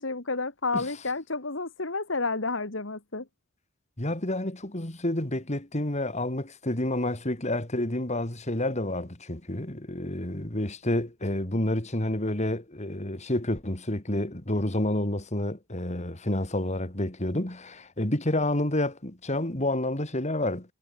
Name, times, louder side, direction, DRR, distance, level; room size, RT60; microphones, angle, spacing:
voice 1, 0.0-3.2, left 3 dB, 70° left, 2.1 m, -30 dB
voice 2, 4.0-20.7, left 1 dB, 35° left, 2.8 m, -29 dB
head